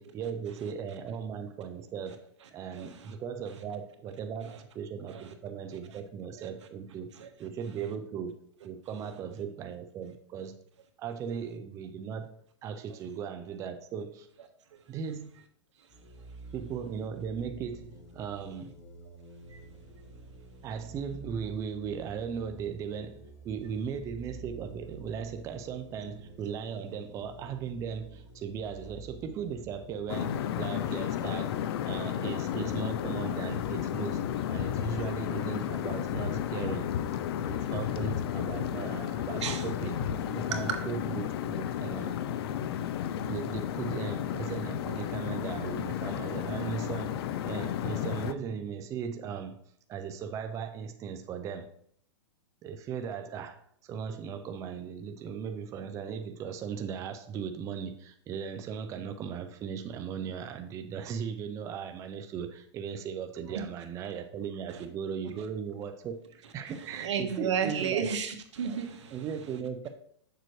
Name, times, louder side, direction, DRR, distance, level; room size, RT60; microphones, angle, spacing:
voice 1, 0.0-7.1 7.4-8.4 8.6-10.6 11.0-12.3 12.6-14.3 14.9-15.3 16.5-18.8 20.6-31.6 31.9-34.2 34.5-36.9 37.5-42.2 43.3-49.6 49.9-51.7 52.6-53.6 53.8-68.1 69.1-69.9, right 7 dB, 20° right, 7 dB, 0.5 m, -37 dB
voice 2, 2.7-3.1 4.5-4.6 5.1-5.2 7.2-7.3 14.7-14.8 19.5-19.6 39.4-39.6 40.5-40.8 63.5-63.6 64.7-64.8 67.0-69.2, right 7 dB, 80° right, 5 dB, 1.3 m, -32 dB
sound 1, 15.9-33.3, right 2 dB, 40° left, 1.4 m, -50 dB
sound 2, 30.1-48.3, left 10 dB, 55° left, 0.6 m, -33 dB
7.5 x 6.8 x 3.2 m, 0.66 s
hypercardioid pair, 145°, 15 cm